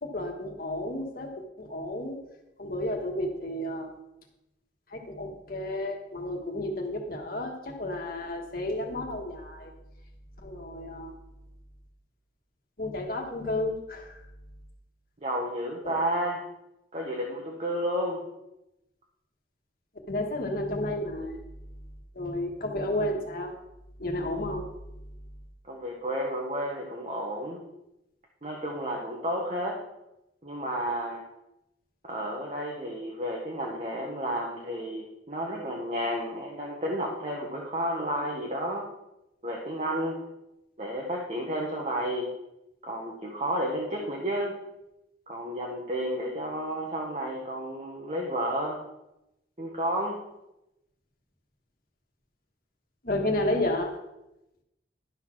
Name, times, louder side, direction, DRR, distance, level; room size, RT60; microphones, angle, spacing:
voice 1, 0.0-1.3 1.6-2.2 2.6-3.9 4.9-9.7 10.4-11.1 12.8-14.2 15.8-16.0 20.1-21.4 22.1-23.5 24.0-24.7 53.0-53.9, left 1 dB, 50° left, 1 dB, 1.5 m, -31 dB
voice 2, 15.2-16.4 16.9-18.2 25.6-27.6 28.4-29.8 30.4-31.2 32.0-38.9 39.4-40.2 40.8-42.3 42.8-44.6 45.3-48.8 49.6-50.2, equal, 35° right, -1 dB, 1.1 m, -31 dB
11.5 x 4.1 x 5.9 m, 0.91 s
head